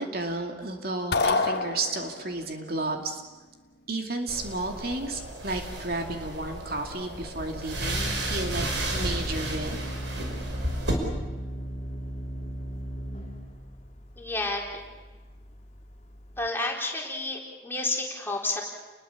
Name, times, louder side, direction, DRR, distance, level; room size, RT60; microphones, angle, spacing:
voice 1, 0.0-3.2 3.9-9.8, right 2 dB, 55° right, 3 dB, 2.5 m, -32 dB
sound 1, 1.1-2.4, left 3 dB, 55° left, 1.3 m, -26 dB
sound 2, 4.3-10.9, right 1 dB, 75° right, 5.6 m, -33 dB
Organ, 6.1-16.5, equal, 35° left, 3.3 m, -37 dB
voice 2, 14.2-14.6 16.4-18.6, left 2 dB, 10° left, -1 dB, 4.0 m, -30 dB
30.0 x 21.5 x 7.2 m, 1.3 s
head